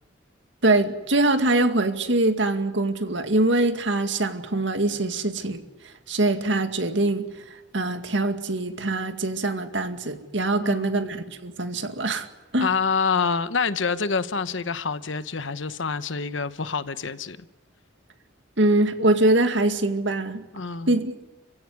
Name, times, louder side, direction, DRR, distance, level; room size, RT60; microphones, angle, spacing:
voice 1, 0.6-5.6 6.1-7.2 7.7-12.3 12.5-12.7 18.6-20.4 20.9-21.1, right 2 dB, 65° right, 2.1 m, -23 dB
voice 2, 10.6-11.0 12.6-17.4 20.5-21.0, left 5 dB, 75° left, 1.1 m, -27 dB
29.5 x 16.0 x 9.7 m
head